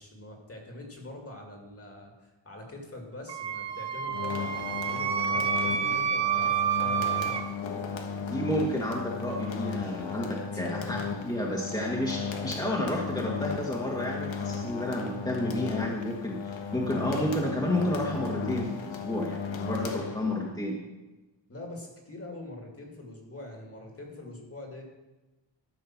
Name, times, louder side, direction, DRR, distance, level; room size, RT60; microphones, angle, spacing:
voice 1, 0.0-7.5 10.5-11.1 21.5-24.8, left 2 dB, 30° left, 1 dB, 2.5 m, -44 dB
Wind instrument woodwind instrument, 3.3-7.4, right 8 dB, 65° right, 0.9 m, -29 dB
sound 1, 4.1-20.6, left 6 dB, 85° left, 1.4 m, -35 dB
voice 2, 8.3-11.0 11.2-20.8, left 1 dB, 10° left, -3 dB, 1.8 m, -31 dB
13.5 x 6.3 x 6.0 m, 1.1 s
wide cardioid pair, 115°, 45 cm